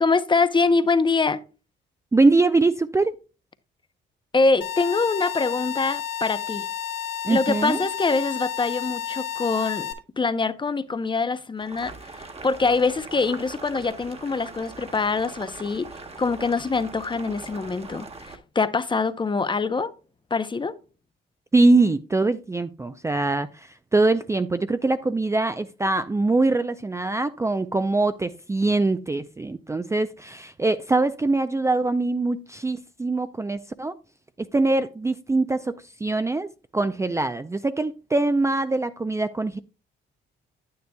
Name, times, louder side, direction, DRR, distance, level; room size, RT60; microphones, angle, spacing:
voice 1, 0.0-1.4 4.3-6.7 7.3-19.9 20.3-20.7, left 4 dB, 25° left, 0.7 m, -24 dB
voice 2, 2.1-3.1 7.2-7.8 21.5-34.0 34.5-39.6, right 2 dB, 15° right, 0.4 m, -23 dB
sound 1, 4.6-9.9, left 10 dB, 85° left, 1.5 m, -31 dB
Boiling, 11.6-18.4, right 3 dB, 30° right, 1.3 m, -41 dB
9.5 x 9.0 x 2.2 m
cardioid pair, 90°, 20 cm